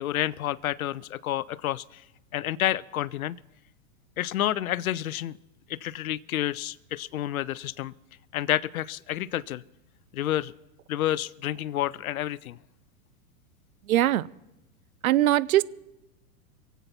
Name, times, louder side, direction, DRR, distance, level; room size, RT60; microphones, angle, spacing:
voice 1, 0.0-2.0 2.3-3.4 4.2-5.4 5.7-7.9 8.3-9.6 10.1-10.5 10.9-12.6, left 13 dB, 85° left, 22 dB, 0.6 m, -29 dB
voice 2, 13.9-14.3 15.0-15.6, right 14 dB, 85° right, 21 dB, 0.6 m, -21 dB
23.5 x 8.2 x 5.7 m, 0.95 s
hypercardioid pair, 120°, 42 cm